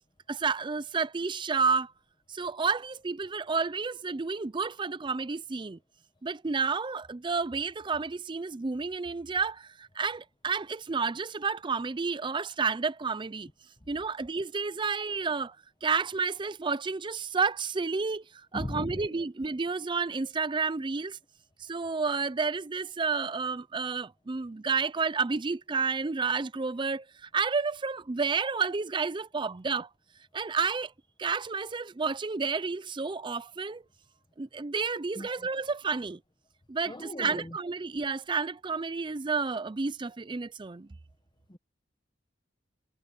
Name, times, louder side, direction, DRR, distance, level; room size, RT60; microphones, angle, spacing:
voice 1, 0.3-1.9 2.3-5.8 6.2-13.5 13.9-15.6 15.8-21.2 21.6-29.9 30.3-30.9 31.2-33.8 34.4-36.2 36.7-40.9, right 4 dB, 25° right, 0.5 m, -30 dB
voice 2, 18.5-19.0 35.2-35.5 36.9-37.6 41.5-41.6, left 1 dB, 25° left, 1.1 m, -38 dB
head